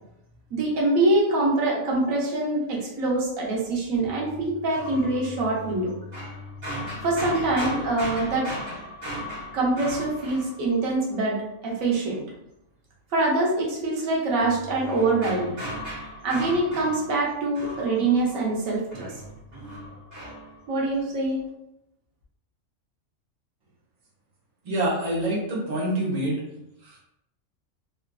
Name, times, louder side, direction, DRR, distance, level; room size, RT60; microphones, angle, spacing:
voice 1, 0.5-5.9 7.0-8.5 9.5-11.4 11.6-12.2 13.1-15.6 16.2-19.1 20.7-21.4, right 2 dB, 90° right, -3 dB, 1.2 m, -24 dB
sound 1, 4.0-11.2 14.4-18.6 18.9-20.6, equal, 60° right, 1.7 m, -37 dB
voice 2, 24.6-26.4 26.8-27.0, right 1 dB, 35° right, -5 dB, 0.8 m, -26 dB
3.0 x 2.4 x 2.2 m, 0.84 s
omnidirectional pair, 1.4 m